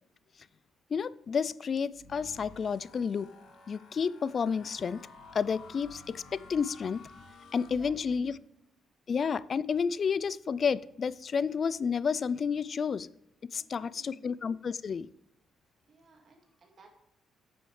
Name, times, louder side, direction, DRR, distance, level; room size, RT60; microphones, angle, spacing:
voice 1, 0.9-3.3 3.7-5.0 5.3-7.0 7.5-8.3 9.1-13.1 13.5-15.1, left 6 dB, 45° left, 19 dB, 0.3 m, -30 dB
sound 1, 1.9-8.4, left 3 dB, 80° left, 2.2 m, -53 dB
voice 2, 7.6-8.5 13.5-14.2 15.9-16.9, right 3 dB, 50° right, 3 dB, 2.0 m, -58 dB
9.0 x 7.0 x 3.2 m, 0.82 s
cardioid pair, 90°, 0 cm